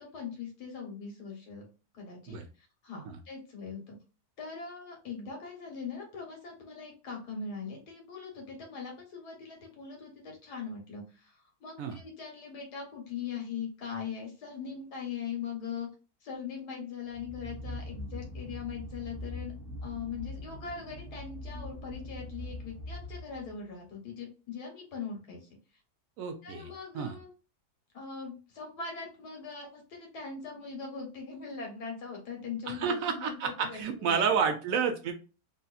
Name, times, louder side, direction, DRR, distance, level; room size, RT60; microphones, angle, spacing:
voice 1, 0.0-1.6 1.9-3.9 4.4-15.9 16.2-19.5 19.8-25.5 26.4-27.3 27.9-34.1, left 6 dB, 85° left, 0 dB, 1.7 m, -41 dB
sound 1, 17.1-23.6, left 1 dB, 40° right, 1.1 m, -42 dB
voice 2, 26.2-27.2 32.7-35.1, right 6 dB, 70° right, 6 dB, 0.9 m, -30 dB
3.3 x 2.7 x 2.4 m, 0.33 s
omnidirectional pair, 1.7 m